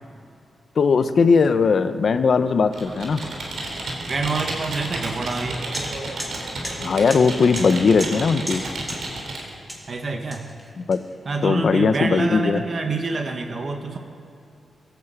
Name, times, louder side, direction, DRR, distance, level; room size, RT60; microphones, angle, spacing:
voice 1, 0.8-3.2 6.8-8.6 10.8-11.0 11.4-12.6, left 5 dB, 60° left, 10 dB, 0.9 m, -19 dB
Computer keyboard, 2.7-9.5, right 2 dB, 75° right, 3.3 m, -32 dB
voice 2, 4.1-5.6 9.9-10.5 11.2-14.0, right 3 dB, 50° right, 4 dB, 1.3 m, -26 dB
sound 1, 5.3-5.4 5.7-5.9 6.2-6.3 6.6-6.8 7.1-7.2 7.6-7.7 8.0-8.2 8.5-8.6 8.9-9.0 9.7-9.9 10.3-11.3, equal, 10° right, 3.4 m, -34 dB
17.0 x 9.4 x 8.1 m, 2.8 s
cardioid pair, 95°, 0 cm